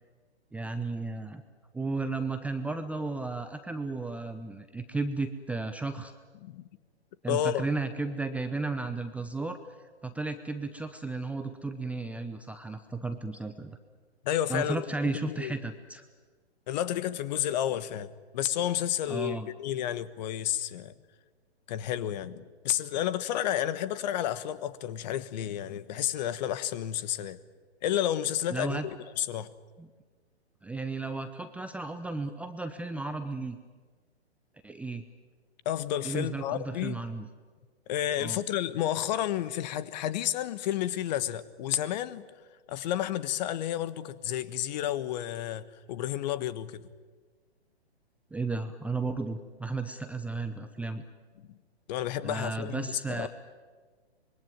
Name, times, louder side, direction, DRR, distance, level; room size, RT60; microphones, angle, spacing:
voice 1, 0.5-1.4 1.7-6.1 7.2-9.6 10.0-13.8 14.5-16.0 19.1-19.5 28.5-28.9 29.8-29.9 30.6-33.6 34.6-35.0 36.0-37.3 38.2-38.4 48.3-51.0 52.2-53.3, right 3 dB, 5° right, 0.7 m, -34 dB
voice 2, 7.3-7.7 14.2-14.9 15.3-15.5 16.7-20.9 21.7-27.4 27.8-28.8 29.2-29.5 35.6-37.0 37.9-42.2 42.7-46.8 51.9-53.3, left 11 dB, 40° left, 1.3 m, -31 dB
25.5 x 22.0 x 9.2 m
hypercardioid pair, 130°, 33 cm